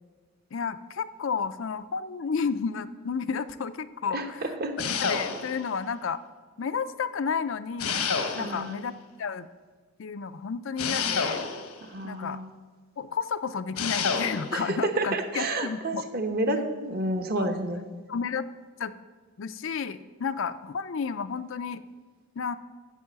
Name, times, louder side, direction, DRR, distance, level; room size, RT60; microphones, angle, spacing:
voice 1, 0.5-4.4 4.8-6.2 6.6-8.1 8.3-8.9 9.2-9.5 10.0-11.4 12.0-12.4 13.0-16.0 17.4-17.5 18.1-18.5 18.8-18.9 19.4-21.8 22.4-22.6, left 6 dB, 60° left, 13 dB, 0.4 m, -31 dB
voice 2, 4.1-4.8 8.4-8.8 11.8-12.5 14.5-17.9, right 1 dB, 45° right, 6 dB, 1.0 m, -30 dB
sound 1, 4.8-5.7 7.8-8.8 10.8-11.8 13.8-14.5, left 5 dB, 85° left, 1.2 m, -29 dB
9.2 x 7.5 x 7.5 m, 1.4 s
head